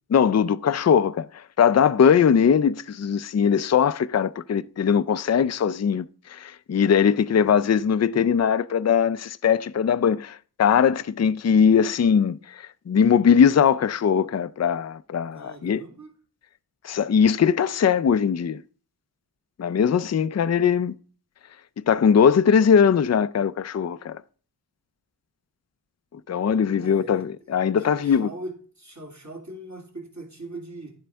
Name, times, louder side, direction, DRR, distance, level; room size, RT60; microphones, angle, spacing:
voice 1, 0.1-15.8 16.8-18.6 19.6-20.9 21.8-24.2 26.3-28.3, left 7 dB, 40° left, 0.4 m, -20 dB
voice 2, 15.3-16.1 26.8-27.3 27.8-28.5 28.8-30.9, right 1 dB, 45° right, 2.6 m, -40 dB
11.0 x 7.6 x 3.4 m
wide cardioid pair, 70°, 41 cm